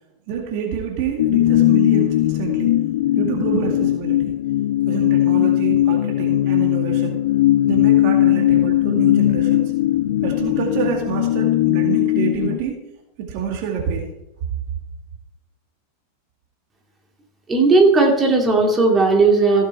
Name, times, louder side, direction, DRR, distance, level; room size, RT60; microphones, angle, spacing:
voice 1, 0.3-2.7 3.1-4.3 4.9-7.2 7.7-9.7 10.2-12.8 13.2-14.1, right 7 dB, 45° right, 1 dB, 2.1 m, -27 dB
sound 1, 1.2-12.6, left 13 dB, 55° left, 0.4 m, -18 dB
voice 2, 17.5-19.7, right 3 dB, 15° right, 1 dB, 2.5 m, -15 dB
15.5 x 7.5 x 4.5 m, 0.88 s
figure-of-eight pair, 90°, 0 cm